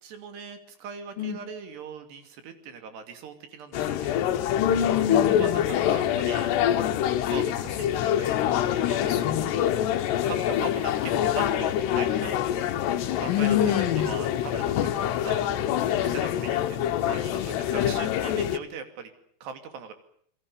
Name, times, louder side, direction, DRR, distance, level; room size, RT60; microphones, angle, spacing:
voice 1, 0.0-4.3 5.4-6.5 7.3-8.4 8.9-9.2 9.5-12.4 13.2-15.5 16.0-16.8 17.0-19.1 19.4-19.9, right 6 dB, 75° right, 7 dB, 4.9 m, -40 dB
sound 1, 3.7-18.6, left 10 dB, 80° left, 3.4 m, -25 dB
voice 2, 4.6-5.6 9.1-9.5 13.3-14.1, left 9 dB, 65° left, 7 dB, 3.2 m, -26 dB
27.5 x 22.0 x 6.9 m, 0.64 s
omnidirectional pair, 4.8 m